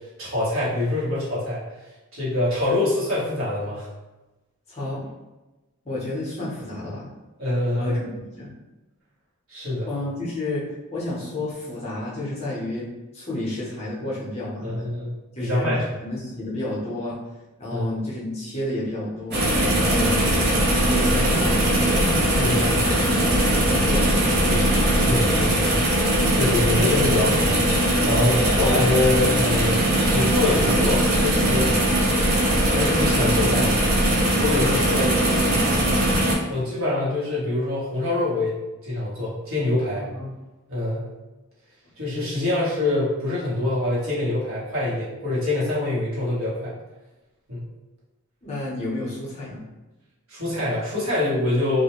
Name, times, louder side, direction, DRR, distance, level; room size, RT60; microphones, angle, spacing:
voice 1, 0.2-1.6 2.1-3.9 7.4-8.0 9.5-9.9 14.6-15.1 15.4-15.8 17.7-17.9 22.4-22.7 24.9-25.9 26.3-29.8 30.1-31.7 32.7-33.8 34.4-35.1 36.5-38.5 38.8-40.1 40.7-41.1 42.0-46.7 47.5-47.6 50.3-51.8, left 2 dB, 65° right, -8 dB, 1.1 m, -24 dB
voice 2, 4.7-5.0 5.8-7.1 7.7-8.5 9.8-12.9 13.1-14.9 15.3-15.7 16.0-17.2 17.6-20.1 20.8-24.8 28.3-28.5 34.7-35.8 40.0-40.3 48.4-49.6, left 1 dB, 30° left, -7 dB, 0.6 m, -31 dB
sound 1, 19.3-36.3, right 1 dB, 45° right, 0.5 m, -20 dB
2.4 x 2.1 x 2.9 m, 1.1 s
head